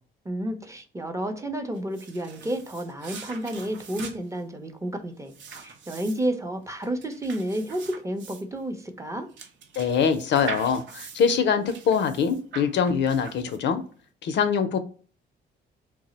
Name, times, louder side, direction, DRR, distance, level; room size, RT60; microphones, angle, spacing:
voice 1, 0.2-5.3 5.6-9.3, right 1 dB, 15° right, 5 dB, 0.6 m, -31 dB
sound 1, 1.7-13.9, right 5 dB, 70° right, 0.7 m, -43 dB
voice 2, 9.8-13.8 14.2-14.8, left 6 dB, 65° left, 9 dB, 0.5 m, -23 dB
2.3 x 2.0 x 3.8 m, 0.41 s
cardioid pair, 90°, 20 cm